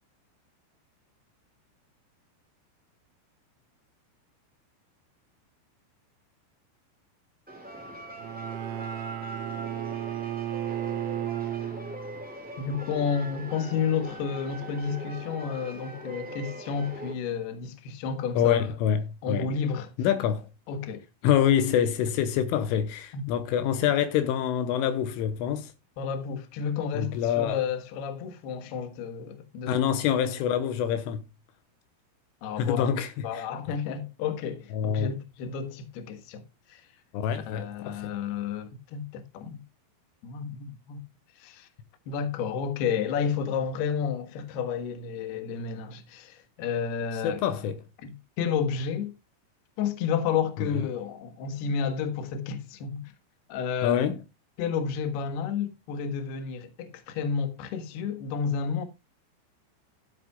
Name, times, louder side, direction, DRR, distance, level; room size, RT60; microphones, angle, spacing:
sound 1, 7.5-17.1, right 1 dB, 5° right, 1.7 m, -41 dB
Bowed string instrument, 8.2-12.3, right 12 dB, 85° right, 3.2 m, -34 dB
voice 1, 12.6-18.7 19.2-19.9 20.7-21.0 23.1-23.2 26.0-29.8 32.4-32.9 33.2-36.4 36.7-36.8 37.3-39.6 40.2-41.0 41.4-41.7 42.1-47.4 48.0-49.1 49.8-53.1 53.5-54.0 54.6-58.8, left 6 dB, 65° left, 3.1 m, -31 dB
voice 2, 18.3-19.5 20.0-20.5 21.2-25.7 26.9-27.6 29.7-31.2 32.6-33.4 34.7-35.1 37.1-38.1 47.2-47.8 50.7-50.9 53.8-54.2, left 9 dB, 85° left, 3.4 m, -26 dB
13.0 x 11.5 x 2.3 m
omnidirectional pair, 5.7 m